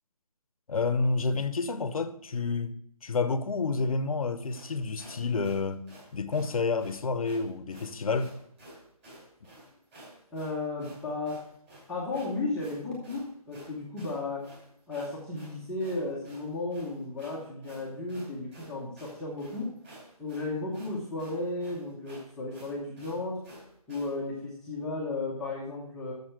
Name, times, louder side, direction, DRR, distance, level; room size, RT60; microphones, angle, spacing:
voice 1, 0.7-2.7 3.0-5.9 6.1-8.3, left 4 dB, 65° left, 0.9 m, -29 dB
sound 1, 4.5-24.2, right 1 dB, 20° right, 3.8 m, -52 dB
voice 2, 10.3-11.4 11.9-14.4 14.9-19.7 20.2-23.4 23.9-26.1, left 2 dB, 5° left, 1.0 m, -34 dB
6.8 x 6.7 x 6.3 m
hypercardioid pair, 165°, 19 cm